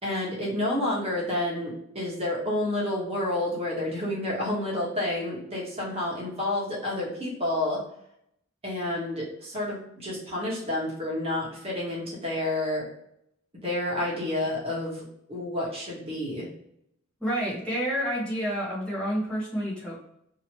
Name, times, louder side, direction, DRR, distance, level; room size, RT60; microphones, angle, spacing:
voice 1, 0.0-7.8 8.6-12.9 13.5-16.5, left 1 dB, 30° right, -5 dB, 1.2 m, -29 dB
voice 2, 17.2-20.0, equal, 5° left, -8 dB, 1.0 m, -29 dB
2.9 x 2.8 x 2.9 m, 0.74 s
head